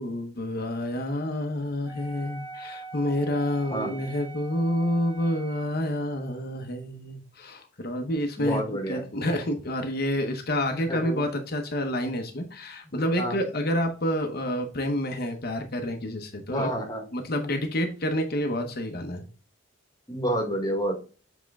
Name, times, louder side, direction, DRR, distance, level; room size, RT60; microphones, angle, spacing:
voice 1, 0.0-8.6 8.9-16.7 17.1-19.3, left 1 dB, 45° left, 5 dB, 0.9 m, -28 dB
Wind instrument woodwind instrument, 1.9-5.8, right 4 dB, 25° right, 0.9 m, -43 dB
voice 2, 8.4-9.0 10.9-11.3 13.2-13.4 16.5-17.1 20.1-21.0, equal, 20° left, 2 dB, 1.4 m, -29 dB
7.4 x 3.6 x 3.5 m, 0.36 s
head